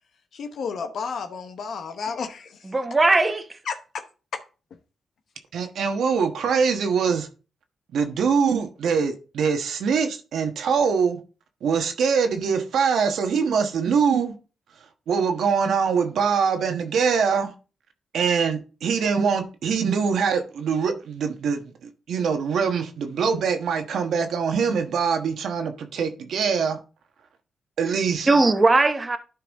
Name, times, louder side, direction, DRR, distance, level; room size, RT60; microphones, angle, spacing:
voice 1, 0.3-2.5 3.7-4.0, left 5 dB, 70° left, 1.0 m, -32 dB
voice 2, 2.6-3.6 28.3-29.2, right 2 dB, 30° right, 1.1 m, -19 dB
voice 3, 5.5-7.3 7.9-11.2 11.6-14.4 14.7-17.5 18.1-26.8 27.8-28.3, right 6 dB, 80° right, 1.3 m, -23 dB
11.5 x 4.8 x 3.5 m
cardioid pair, 85°, 0 cm